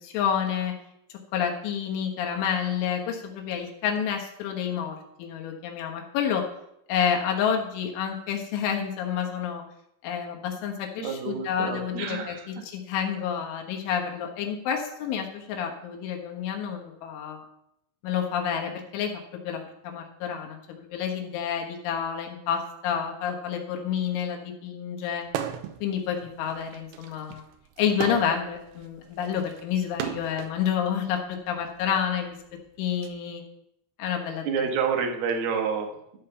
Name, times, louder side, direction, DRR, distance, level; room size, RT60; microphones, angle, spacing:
voice 1, 0.0-0.8 1.3-6.5 6.9-9.6 10.0-17.4 18.0-19.1 19.4-25.3 25.8-27.4 27.8-32.4 32.8-33.4 34.0-34.5, left 8 dB, 80° left, 2 dB, 3.9 m, -29 dB
voice 2, 11.0-12.5 34.4-36.0, right 6 dB, 65° right, 2 dB, 3.1 m, -28 dB
sound 1, 25.3-25.8 26.2-30.6 31.4-33.1, right 9 dB, 80° right, 2.5 m, -36 dB
13.0 x 5.4 x 6.9 m, 0.80 s
omnidirectional pair, 5.5 m